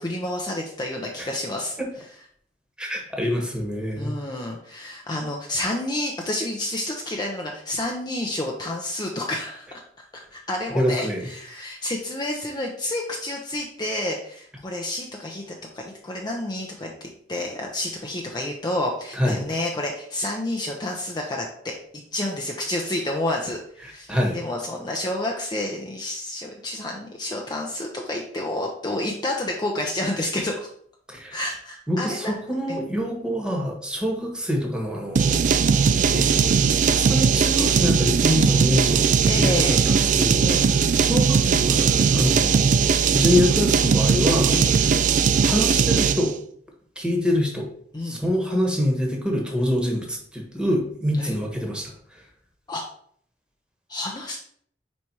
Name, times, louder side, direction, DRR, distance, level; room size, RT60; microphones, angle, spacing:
voice 1, 0.0-1.7 4.0-9.7 10.1-21.7 22.1-30.7 31.3-32.4 32.7-32.8 39.3-39.8 40.4-40.7 44.4-44.8 47.9-48.2 51.1-51.3 52.7-52.8 53.9-54.4, left 1 dB, 25° left, 0 dB, 0.6 m, -29 dB
voice 2, 2.8-4.1 10.7-11.3 19.2-19.4 24.1-24.4 31.1-31.4 31.9-35.5 36.1-36.6 36.8-40.4 41.0-42.7 43.1-44.6 45.4-46.3 47.0-47.7 48.0-51.9, equal, 5° right, 0 dB, 1.2 m, -25 dB
sound 1, 35.2-46.3, right 6 dB, 45° right, 0.3 m, -19 dB
4.8 x 4.2 x 4.6 m, 0.62 s
head